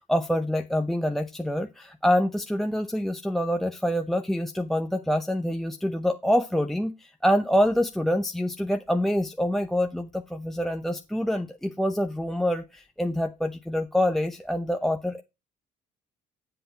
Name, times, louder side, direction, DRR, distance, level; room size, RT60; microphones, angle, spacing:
voice 1, 0.0-15.2, equal, ahead, 0.8 m, -26 dB
9.8 x 7.8 x 4.5 m
cardioid pair, 110°, 17 cm